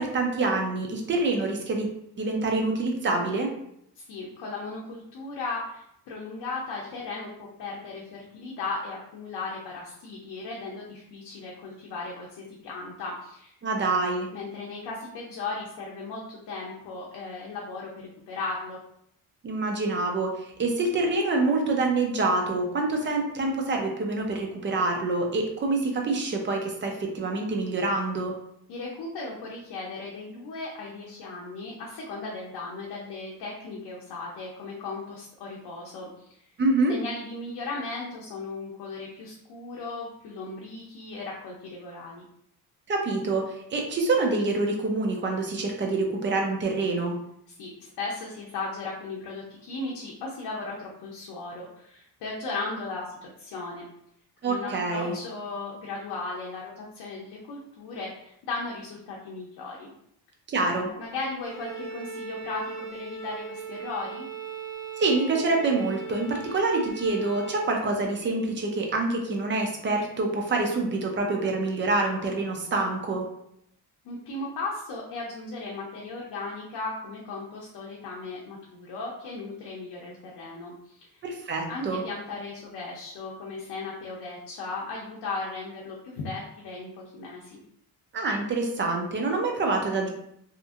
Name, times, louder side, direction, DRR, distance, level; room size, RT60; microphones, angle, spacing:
voice 1, 0.0-1.9 2.2-3.5 13.6-14.3 19.4-28.3 36.6-36.9 42.9-47.2 54.4-55.2 60.5-60.9 65.0-73.2 81.2-82.0 88.1-90.1, right 3 dB, 30° right, 2 dB, 0.4 m, -26 dB
voice 2, 4.0-13.5 14.3-18.8 28.7-36.3 36.9-42.2 47.6-53.8 54.4-59.9 61.0-64.2 74.0-81.2 81.7-87.6, left 3 dB, 70° left, -3 dB, 0.6 m, -36 dB
Bowed string instrument, 61.4-67.8, right 4 dB, 10° left, 0.7 m, -39 dB
2.8 x 2.5 x 2.4 m, 0.73 s
cardioid pair, 145°, 40 cm